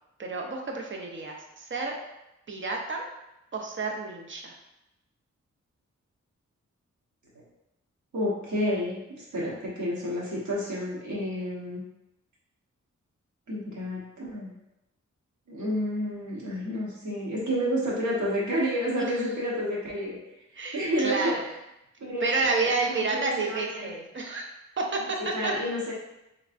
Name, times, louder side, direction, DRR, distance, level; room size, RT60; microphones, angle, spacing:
voice 1, 0.2-2.0 2.5-3.1 3.5-4.5 19.0-19.2 20.6-21.4 22.2-24.4 24.8-25.2 25.4-25.5, right 3 dB, 40° right, 1 dB, 0.6 m, -30 dB
voice 2, 8.1-11.8 13.5-14.5 15.5-20.2 20.7-21.3 22.0-23.9 25.3-25.9, equal, 75° right, -6 dB, 1.2 m, -30 dB
3.5 x 3.2 x 2.5 m, 0.91 s
wide cardioid pair, 115°, 29 cm